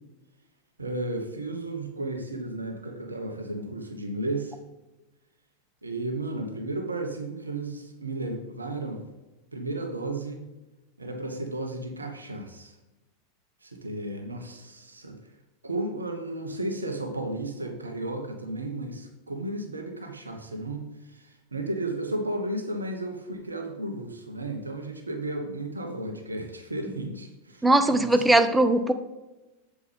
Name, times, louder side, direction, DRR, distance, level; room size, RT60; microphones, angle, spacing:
voice 1, 0.8-4.6 5.8-9.0 9.5-10.4 11.0-12.7 13.6-15.2 15.6-28.5, right 2 dB, 80° right, 4 dB, 1.2 m, -34 dB
voice 2, 27.6-28.9, right 1 dB, 10° right, 9 dB, 0.7 m, -20 dB
8.4 x 7.6 x 3.4 m, 1.1 s
figure-of-eight pair, 90°, 0 cm